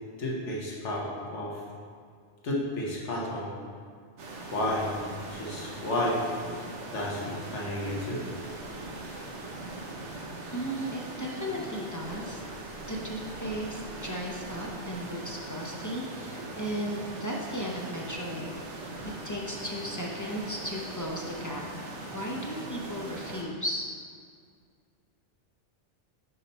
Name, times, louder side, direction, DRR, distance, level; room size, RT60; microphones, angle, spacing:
voice 1, 0.2-1.6 2.4-3.5 4.5-5.0 5.3-6.2 6.9-8.2, left 1 dB, 90° left, -3 dB, 1.5 m, -31 dB
sound 1, 4.2-23.4, right 2 dB, 80° right, 1.1 m, -40 dB
voice 2, 10.5-12.4 12.9-18.5 19.2-21.6 22.1-23.8, equal, 25° left, -2 dB, 0.4 m, -35 dB
5.6 x 5.5 x 4.2 m, 2.1 s
omnidirectional pair, 1.2 m